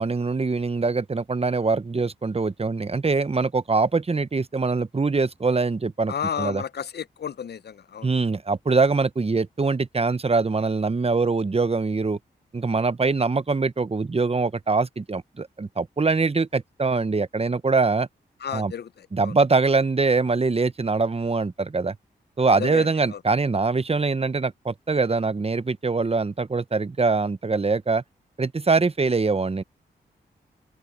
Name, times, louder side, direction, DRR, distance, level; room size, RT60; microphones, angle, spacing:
voice 1, 0.0-6.6 8.0-12.2 12.5-18.1 18.5-18.7 19.1-22.0 22.4-28.0 28.4-29.6, right 4 dB, 30° right, 1.0 m, -23 dB
voice 2, 6.1-8.1 18.4-19.3 22.6-23.2, left 8 dB, 65° left, 0.8 m, -32 dB
open air
supercardioid pair, 40°, 19 cm